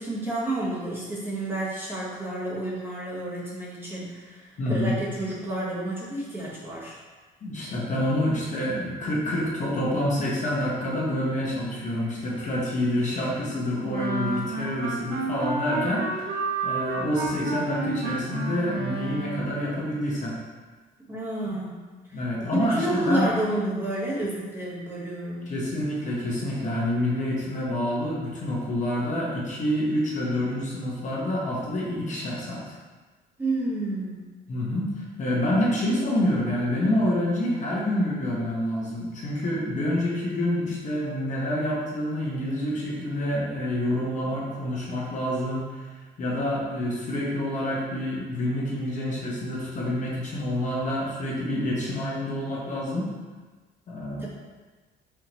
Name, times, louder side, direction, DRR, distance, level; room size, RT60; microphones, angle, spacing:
voice 1, 0.0-7.0 21.1-22.2 22.5-25.5 33.4-34.3 54.2-54.3, right 1 dB, 15° right, -7 dB, 1.3 m, -30 dB
voice 2, 4.6-5.0 7.4-20.4 22.1-23.3 25.5-32.7 34.5-45.9 46.2-53.1 53.9-54.3, left 1 dB, 45° left, -5 dB, 1.3 m, -27 dB
sound 1, 13.9-19.6, right 4 dB, 80° right, 1.0 m, -30 dB
4.7 x 3.6 x 3.0 m, 1.3 s
cardioid pair, 110°, 17 cm